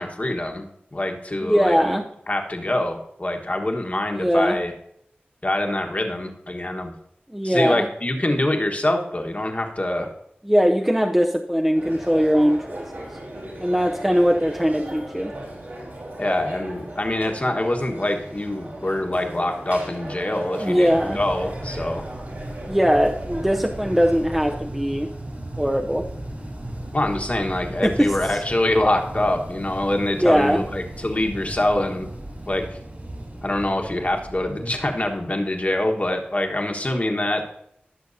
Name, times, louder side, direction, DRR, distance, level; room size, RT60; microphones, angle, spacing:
voice 1, 0.0-2.0 2.3-4.7 5.4-6.9 7.4-10.1 16.2-22.0 26.9-32.1 32.5-32.8 33.4-37.4, left 1 dB, 40° left, 3 dB, 1.4 m, -25 dB
voice 2, 1.4-2.0 4.1-4.6 7.3-7.9 10.4-13.1 13.6-15.3 20.6-21.2 22.7-25.1 25.6-26.0 27.8-28.1 30.2-30.6, equal, 5° right, 1 dB, 0.6 m, -20 dB
sound 1, 11.7-24.6, right 1 dB, 70° right, 3.4 m, -37 dB
sound 2, 20.8-35.8, right 1 dB, 50° right, 2.7 m, -36 dB
16.0 x 6.3 x 2.7 m, 0.74 s
cardioid pair, 40°, 4 cm